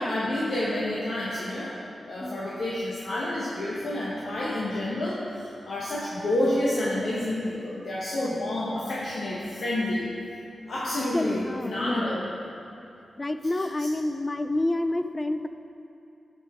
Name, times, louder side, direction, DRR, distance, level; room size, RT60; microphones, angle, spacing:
voice 1, 0.0-1.7 2.1-10.1 10.7-12.3 13.5-13.7, left 1 dB, 70° left, -7 dB, 1.2 m, -29 dB
voice 2, 10.9-12.3 13.2-15.5, left 1 dB, 25° left, 9 dB, 0.4 m, -29 dB
13.5 x 5.4 x 3.7 m, 2.8 s
cardioid pair, 80°, 0 cm